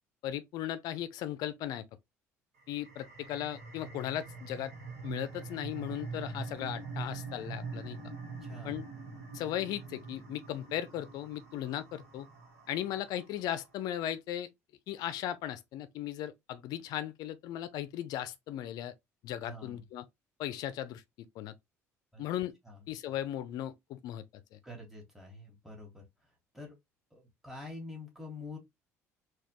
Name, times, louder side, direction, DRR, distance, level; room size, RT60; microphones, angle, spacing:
voice 1, 0.2-1.9 2.7-4.7 5.0-8.0 8.6-8.8 9.3-12.3 12.7-14.5 14.9-18.9 19.2-20.0 20.4-21.0 21.4-21.5 22.2-22.5 22.9-24.2 24.5-24.6, left 12 dB, 55° left, 0.5 m, -37 dB
sound 1, 2.5-13.7, right 4 dB, 70° right, 1.2 m, -44 dB
voice 2, 8.4-8.8 19.4-19.8 22.1-22.2 22.6-22.8 24.6-26.7 27.1-28.6, left 2 dB, 5° right, 1.6 m, -46 dB
4.0 x 2.3 x 3.0 m
figure-of-eight pair, 55°, 8 cm